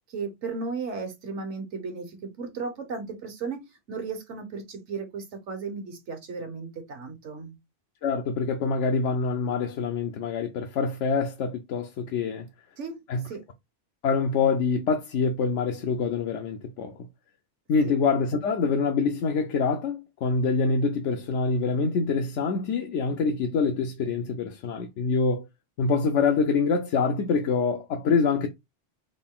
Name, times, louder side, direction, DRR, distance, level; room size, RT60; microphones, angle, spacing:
voice 1, 0.1-7.5 12.8-13.0 13.2-13.4 17.8-17.9, right 4 dB, 75° right, 1.4 m, -35 dB
voice 2, 8.0-12.5 13.1-13.2 14.0-17.0 17.7-25.5 25.8-28.5, left 5 dB, 80° left, 1.0 m, -25 dB
3.7 x 2.3 x 3.7 m
omnidirectional pair, 1.2 m